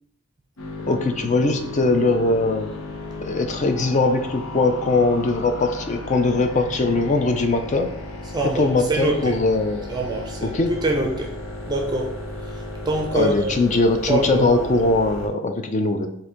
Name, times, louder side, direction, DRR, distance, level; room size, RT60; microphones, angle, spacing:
sound 1, 0.6-15.3, left 2 dB, 90° left, 0.8 m, -35 dB
voice 1, 0.9-2.7 3.2-7.9 8.6-9.8 10.4-10.7 13.1-16.1, left 3 dB, 35° left, 6 dB, 0.4 m, -21 dB
voice 2, 8.3-9.4 9.9-11.4 11.7-13.6 14.1-14.6, right 2 dB, 20° right, 1 dB, 0.5 m, -25 dB
3.8 x 2.6 x 4.3 m, 0.73 s
head